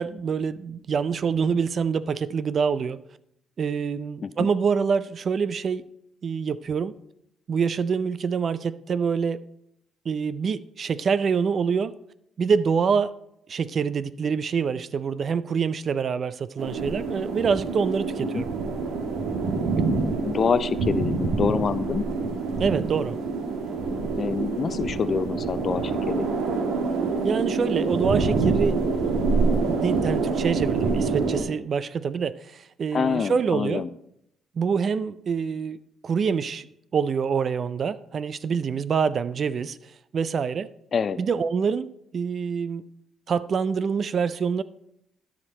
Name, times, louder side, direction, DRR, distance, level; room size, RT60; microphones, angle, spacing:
voice 1, 0.0-3.0 3.6-5.8 6.2-6.9 7.5-9.4 10.1-11.9 12.4-13.1 13.5-18.5 22.6-23.2 27.2-28.9 29.7-33.8 34.6-36.7 36.9-39.8 40.1-40.7 41.2-42.8 43.3-44.6, right 6 dB, 50° right, 0.4 m, -26 dB
sound 1, 16.6-31.4, right 4 dB, 85° right, 1.4 m, -26 dB
voice 2, 20.2-22.0 24.2-26.3 32.9-33.9 40.9-41.2, left 6 dB, 45° left, 0.4 m, -26 dB
12.5 x 5.1 x 4.3 m
cardioid pair, 90°, 0 cm